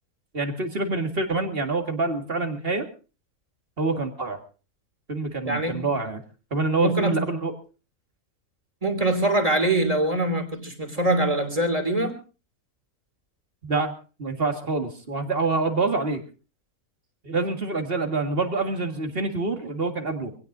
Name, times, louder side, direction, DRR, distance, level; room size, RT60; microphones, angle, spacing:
voice 1, 0.3-2.9 3.8-4.4 5.1-6.2 6.5-7.5 13.6-13.9 14.2-16.2 17.2-20.4, right 3 dB, 40° right, 5 dB, 2.2 m, -26 dB
voice 2, 5.4-5.8 6.8-7.3 8.8-12.1, right 1 dB, 25° right, 7 dB, 3.1 m, -23 dB
25.0 x 17.0 x 2.7 m, 0.34 s
omnidirectional pair, 1.5 m